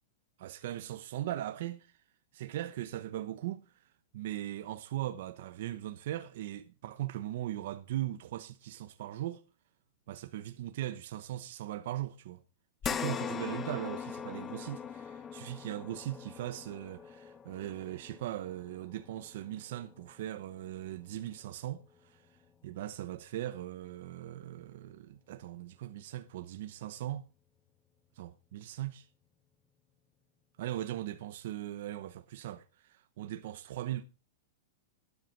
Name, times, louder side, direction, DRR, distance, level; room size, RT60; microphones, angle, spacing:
voice 1, 0.4-1.9 2.3-9.4 10.1-12.4 12.8-22.3 22.6-27.3 28.2-29.1 30.6-34.0, right 13 dB, 50° right, 0.9 m, -39 dB
sound 1, 12.8-21.4 21.9-22.0 23.4-23.5, left 7 dB, 15° left, 0.6 m, -42 dB
13.0 x 10.5 x 4.5 m
supercardioid pair, 175°, 0 cm